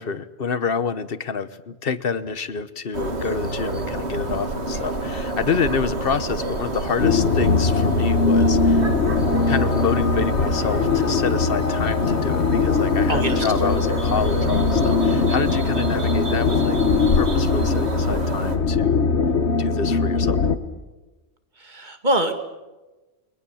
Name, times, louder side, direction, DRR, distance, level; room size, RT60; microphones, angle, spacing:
voice 1, 0.0-8.9 9.5-16.8 17.2-19.0 19.5-20.4, left 5 dB, 55° left, 13 dB, 1.3 m, -28 dB
sound 1, 2.9-18.6, right 2 dB, 80° right, 2.6 m, -29 dB
sound 2, 7.0-20.6, left 4 dB, 85° left, 1.6 m, -21 dB
voice 2, 13.1-13.5 21.6-22.3, right 1 dB, 45° right, 7 dB, 2.3 m, -23 dB
30.0 x 22.5 x 7.2 m, 1.1 s
omnidirectional pair, 1.1 m